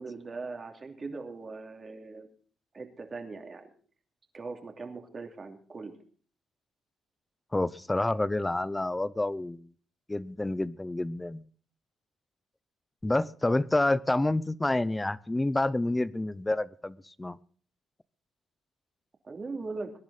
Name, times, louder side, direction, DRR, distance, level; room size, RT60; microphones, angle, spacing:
voice 1, 0.0-2.3 2.7-3.7 4.3-6.0 19.2-19.9, right 3 dB, 35° right, 2.8 m, -40 dB
voice 2, 7.5-9.7 10.1-11.4 13.0-17.4, left 2 dB, 15° left, 0.7 m, -28 dB
21.5 x 10.5 x 4.2 m
cardioid pair, 90°, 0 cm